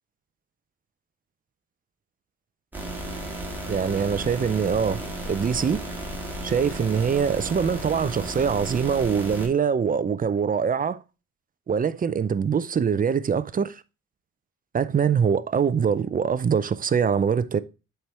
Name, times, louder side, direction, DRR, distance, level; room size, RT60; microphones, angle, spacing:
sound 1, 2.7-9.5, right 1 dB, 5° right, 1.9 m, -34 dB
voice 1, 3.7-5.8 6.4-11.0 11.7-13.8 14.7-17.6, right 7 dB, 30° right, 0.5 m, -23 dB
7.6 x 4.5 x 3.3 m
cardioid pair, 90°, 30 cm